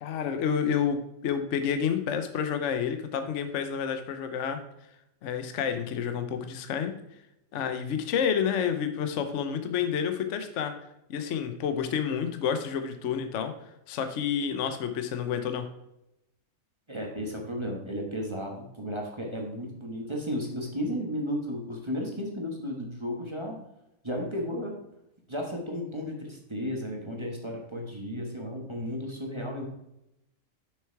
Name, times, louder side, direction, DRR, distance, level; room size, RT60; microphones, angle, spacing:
voice 1, 0.0-4.6 5.2-7.0 7.5-10.7 11.1-13.5 13.9-15.6, left 7 dB, 60° left, 8 dB, 1.0 m, -29 dB
voice 2, 16.9-23.6 24.0-24.7 25.3-29.7, equal, 20° right, 0 dB, 1.2 m, -34 dB
6.6 x 6.5 x 4.5 m, 0.85 s
omnidirectional pair, 1.5 m